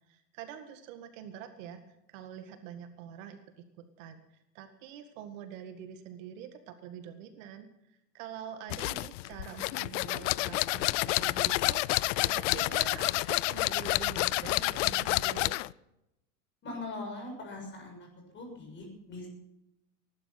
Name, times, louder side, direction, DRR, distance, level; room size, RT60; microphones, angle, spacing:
voice 1, 0.1-1.8 2.1-15.6, right 9 dB, 55° right, 8 dB, 1.9 m, -46 dB
sound 1, 8.7-15.7, left 19 dB, 55° left, 0.5 m, -29 dB
voice 2, 16.6-18.0 18.3-19.3, left 2 dB, 25° left, 2 dB, 6.7 m, -41 dB
19.5 x 12.0 x 5.9 m, 0.86 s
supercardioid pair, 145°, 46 cm